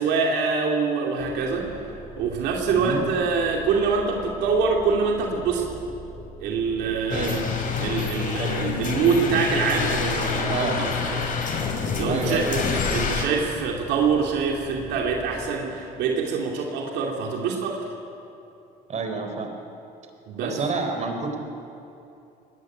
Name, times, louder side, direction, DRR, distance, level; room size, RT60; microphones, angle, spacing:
voice 1, 0.0-1.8 2.2-5.7 6.4-7.5 7.8-11.2 11.9-17.9 20.3-20.6, right 5 dB, 85° right, 0 dB, 2.8 m, -25 dB
sound 1, 1.2-15.5, right 1 dB, 10° left, 6.6 m, -43 dB
voice 2, 6.9-7.4 8.4-8.8 10.5-10.8 12.1-12.7 18.9-19.5 20.4-21.4, right 4 dB, 45° right, 5 dB, 4.0 m, -29 dB
sound 2, 7.1-13.3, left 5 dB, 50° left, 4.0 m, -27 dB
23.5 x 19.0 x 9.3 m, 2.8 s
cardioid pair, 110°, 17 cm